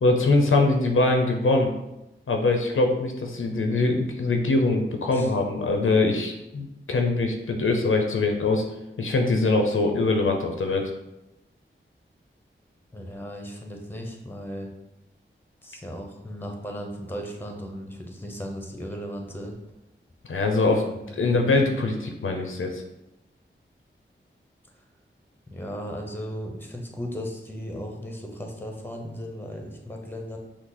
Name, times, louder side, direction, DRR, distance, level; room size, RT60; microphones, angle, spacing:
voice 1, 0.0-1.7 2.3-8.6 9.0-10.9 20.3-20.8 21.2-22.8, left 2 dB, 85° left, 3 dB, 0.7 m, -23 dB
voice 2, 12.9-14.7 15.6-19.5 20.9-21.6 25.5-30.4, equal, 10° left, 2 dB, 0.9 m, -36 dB
6.0 x 2.1 x 4.0 m, 0.92 s
wide cardioid pair, 70°, 20 cm